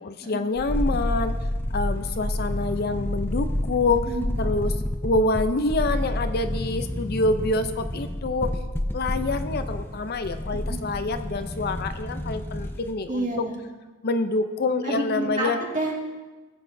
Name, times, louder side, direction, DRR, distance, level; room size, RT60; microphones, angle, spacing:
voice 1, 0.0-1.4 1.7-4.1 4.4-4.7 5.0-8.6 8.9-13.5 14.0-15.6, left 2 dB, 50° left, 9 dB, 0.5 m, -26 dB
sound 1, 0.6-12.9 13.2-13.3, left 1 dB, 10° left, 0.6 m, -29 dB
voice 2, 4.1-4.4 10.7-10.8 13.1-13.6 14.7-16.0, right 1 dB, 40° right, -1 dB, 1.9 m, -29 dB
19.0 x 7.9 x 2.6 m, 1.3 s
head